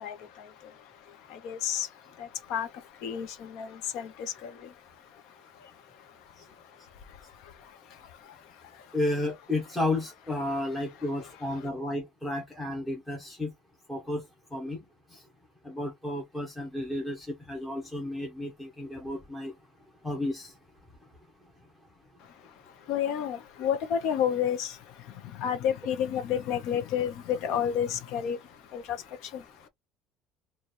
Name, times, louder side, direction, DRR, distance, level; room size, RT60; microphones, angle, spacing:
voice 1, 1.4-1.9 2.5-2.7 3.0-4.1 4.4-4.5 22.9-24.7 25.4-28.4 28.7-29.0, left 9 dB, 60° left, 0.6 m, -29 dB
voice 2, 8.9-13.5 13.9-14.2 14.5-14.8 15.1-15.2 15.6-19.5 20.0-20.5, left 1 dB, 5° left, 0.7 m, -32 dB
3.1 x 2.2 x 4.0 m
cardioid pair, 170°, 0 cm